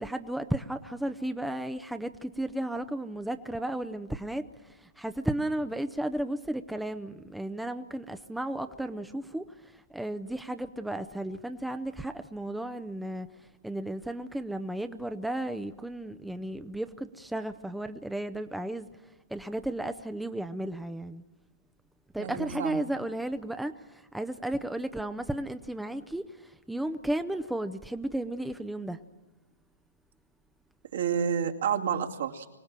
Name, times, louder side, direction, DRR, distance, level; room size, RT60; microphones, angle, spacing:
voice 1, 0.0-18.9 19.3-21.2 22.1-29.0, right 1 dB, 5° right, 0.7 m, -34 dB
voice 2, 22.2-22.8 30.9-32.5, right 7 dB, 65° right, 2.5 m, -29 dB
25.0 x 17.5 x 7.5 m
hypercardioid pair, 135°, 0 cm